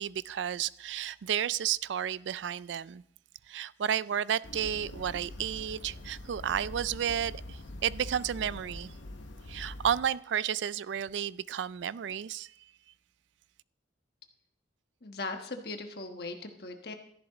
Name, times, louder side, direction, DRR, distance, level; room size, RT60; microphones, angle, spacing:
voice 1, 0.0-3.0 3.5-8.9 9.5-12.5, right 9 dB, 75° right, 0.3 m, -32 dB
sound 1, 4.4-10.0, left 1 dB, 85° left, 0.9 m, -44 dB
voice 2, 15.0-16.9, left 3 dB, 55° left, 1.3 m, -39 dB
13.5 x 11.0 x 4.0 m
head